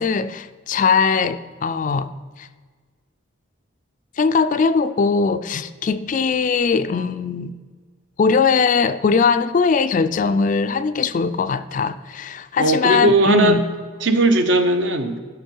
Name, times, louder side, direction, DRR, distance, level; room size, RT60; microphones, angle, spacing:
voice 1, 0.0-2.1 2.4-2.5 4.2-7.6 8.2-13.7, left 5 dB, 40° left, 0.3 m, -20 dB
voice 2, 12.6-13.6 14.0-15.2, right 2 dB, 60° right, 0.8 m, -17 dB
12.5 x 5.2 x 4.5 m
head